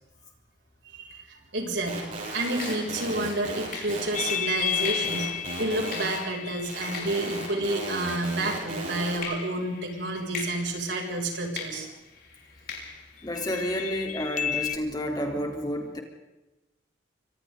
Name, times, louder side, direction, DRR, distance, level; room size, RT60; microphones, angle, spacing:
voice 1, 0.9-11.9, right 2 dB, 75° right, 0 dB, 6.9 m, -30 dB
sound 1, 1.4-1.7 2.6-8.8 9.2-13.9, left 5 dB, 60° left, 7.2 m, -42 dB
sound 2, 1.9-6.2 6.5-9.2, right 2 dB, 45° right, 7.9 m, -35 dB
sound 3, 4.1-8.7 13.3-14.8, left 9 dB, 40° left, 1.0 m, -33 dB
voice 2, 13.2-16.0, equal, 20° left, 1 dB, 3.8 m, -30 dB
29.5 x 25.5 x 4.0 m, 1.0 s
head